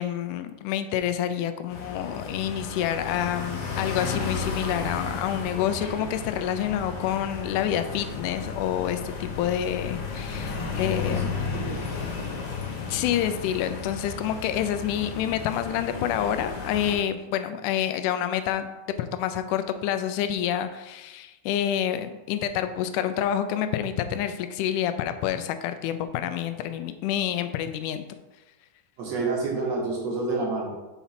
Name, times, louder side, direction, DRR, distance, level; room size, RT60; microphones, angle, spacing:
voice 1, 0.0-11.5 12.9-28.1, left 10 dB, 80° left, 9 dB, 2.0 m, -28 dB
sound 1, 1.7-16.9, left 5 dB, 65° left, 2.2 m, -33 dB
voice 2, 10.3-11.9 29.0-30.7, right 3 dB, 60° right, -2 dB, 2.2 m, -30 dB
5.8 x 4.1 x 5.8 m, 1.1 s
omnidirectional pair, 3.8 m